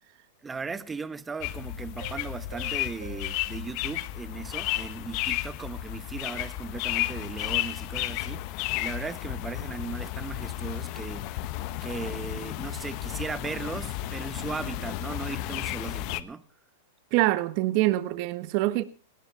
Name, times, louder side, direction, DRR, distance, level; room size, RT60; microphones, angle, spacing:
voice 1, 0.4-11.3 11.8-16.4, right 4 dB, 15° right, 1.1 m, -37 dB
sound 1, 1.4-16.2, left 15 dB, 50° left, 1.1 m, -33 dB
sound 2, 2.0-5.3, right 10 dB, 75° right, 5.2 m, -50 dB
voice 2, 17.1-18.8, right 17 dB, 50° right, 1.5 m, -25 dB
18.5 x 17.5 x 3.5 m
hypercardioid pair, 130°, 0 cm